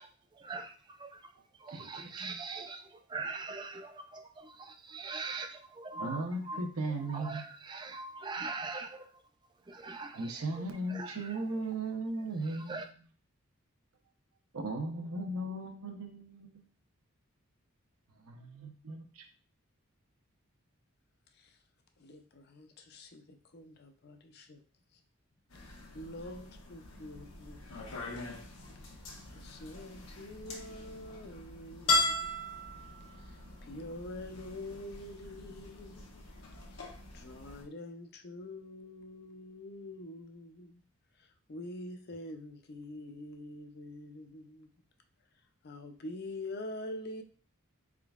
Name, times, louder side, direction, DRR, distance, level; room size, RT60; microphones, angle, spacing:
voice 1, 0.0-9.1 9.7-11.4 12.4-12.9, right 3 dB, 20° right, 6 dB, 0.3 m, -42 dB
voice 2, 1.7-2.1 2.4-2.5 6.0-7.4 10.1-12.8 14.5-16.6 18.3-19.2, right 2 dB, 85° right, 4 dB, 0.7 m, -37 dB
voice 3, 22.0-24.6 24.9-25.0 25.5-27.6 29.3-32.3 33.2-36.2 36.7-40.8 41.2-44.7 45.6-47.2, left 1 dB, 50° left, 6 dB, 0.5 m, -46 dB
sound 1, 25.5-37.6, left 2 dB, 80° left, 1.0 m, -39 dB
4.3 x 3.7 x 2.3 m, 0.41 s
head